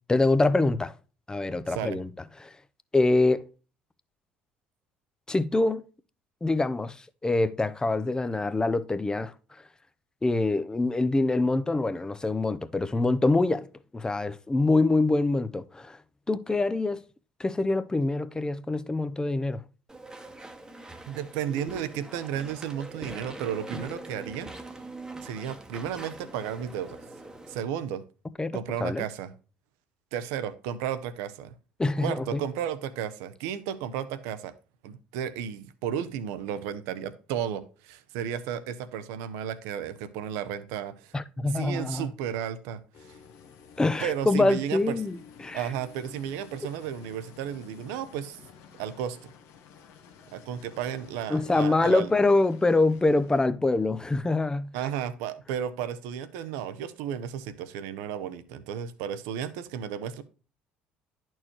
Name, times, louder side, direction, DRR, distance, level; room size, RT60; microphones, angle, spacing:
voice 1, 0.1-0.9 1.3-2.1 2.4-2.5 2.9-3.4 5.3-5.8 6.4-7.0 7.2-9.3 10.2-13.7 13.9-16.0 16.3-17.0 17.4-19.6 28.4-29.1 31.8-32.4 41.1-42.1 43.8-45.7 51.3-54.7, left 2 dB, 15° left, 0.5 m, -25 dB
voice 2, 1.7-2.0 21.1-24.5 25.2-27.0 27.5-28.0 28.5-29.3 30.1-31.5 32.0-34.5 34.8-41.1 41.4-42.8 44.0-45.0 45.5-48.4 48.8-49.3 50.3-52.1 54.7-60.2, right 9 dB, 75° right, 0.7 m, -33 dB
Walk footsteps / Chatter / Squeak, 19.9-27.6, right 2 dB, 15° right, 1.0 m, -43 dB
sound 1, 42.9-53.4, left 7 dB, 70° left, 1.0 m, -52 dB
10.5 x 4.5 x 2.9 m
hypercardioid pair, 65°, 5 cm